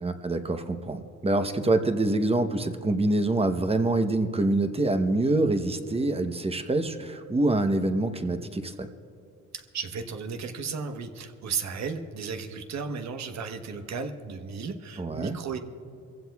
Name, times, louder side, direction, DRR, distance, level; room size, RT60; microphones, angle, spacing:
voice 1, 0.0-8.9 15.0-15.4, right 2 dB, 20° right, 7 dB, 0.9 m, -25 dB
voice 2, 9.5-15.6, right 5 dB, 65° right, 6 dB, 1.2 m, -34 dB
25.5 x 15.5 x 2.3 m, 2.4 s
cardioid pair, 90°, 30 cm